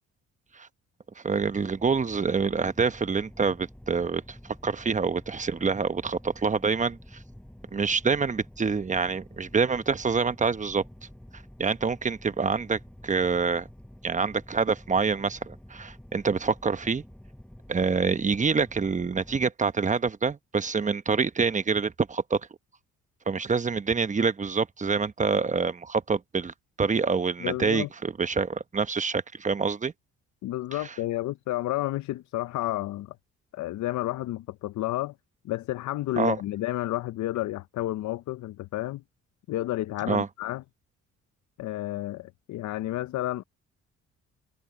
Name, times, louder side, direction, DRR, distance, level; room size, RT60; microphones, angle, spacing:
voice 1, 1.2-4.2 4.6-7.0 7.7-10.8 11.6-13.7 14.0-17.0 17.7-22.4 23.3-29.9 30.8-30.9 36.2-36.4 40.1-40.3, right 5 dB, 25° right, 1.0 m, -26 dB
sound 1, 1.4-19.4, equal, 5° left, 5.7 m, -49 dB
voice 2, 27.4-27.9 30.4-33.2 33.5-35.1 35.4-39.0 39.5-40.6 41.6-43.4, left 15 dB, 70° left, 0.6 m, -31 dB
cardioid pair, 90°, 30 cm